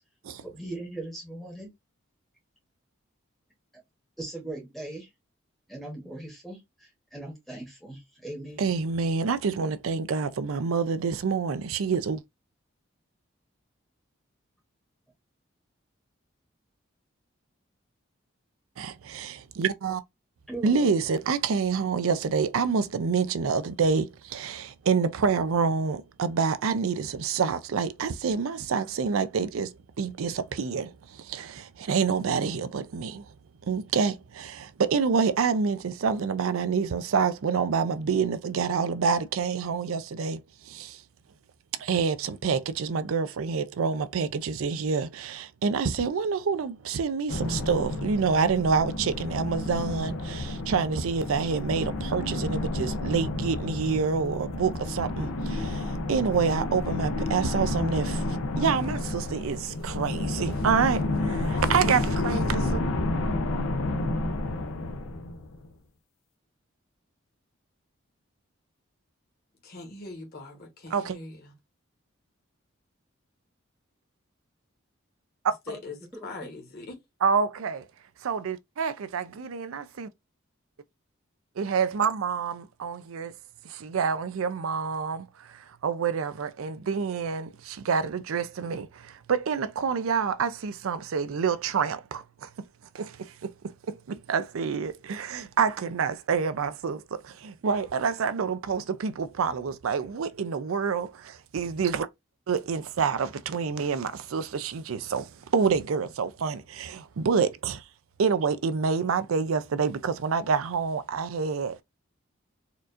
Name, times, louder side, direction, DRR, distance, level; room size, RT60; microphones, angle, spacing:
voice 1, 0.4-1.7 4.2-5.1 5.7-8.8 20.5-20.9 75.7-75.8 76.1-76.3, right 2 dB, ahead, 1.0 m, -39 dB
voice 2, 8.6-12.2 18.8-20.0 20.6-33.3 33.6-41.0 41.8-62.8 70.9-71.2 77.2-77.8 78.2-80.1 81.6-83.3 83.6-92.5 92.9-101.1 101.5-102.1 102.5-107.8 108.2-111.8, right 5 dB, 85° right, 0.4 m, -27 dB
sound 1, 47.3-65.7, left 2 dB, 85° left, 0.5 m, -30 dB
voice 3, 69.6-71.5 75.7-76.0 76.2-77.0, left 3 dB, 45° left, 1.1 m, -41 dB
4.3 x 2.5 x 2.5 m
head